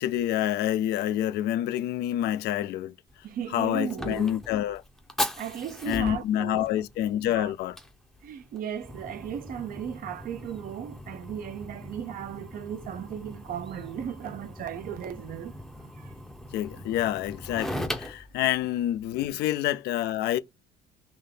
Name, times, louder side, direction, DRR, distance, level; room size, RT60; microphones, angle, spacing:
voice 1, 0.0-2.9 3.5-4.8 5.9-7.7 16.5-20.4, left 12 dB, 75° left, 0.5 m, -27 dB
Fire, 3.1-19.3, left 1 dB, ahead, 0.6 m, -39 dB
voice 2, 3.2-4.3 5.4-6.7 7.3-7.5 8.2-15.6 16.0-16.2 18.4-18.5, right 9 dB, 55° right, 0.6 m, -36 dB
3.5 x 2.8 x 3.8 m
cardioid pair, 110°, 17 cm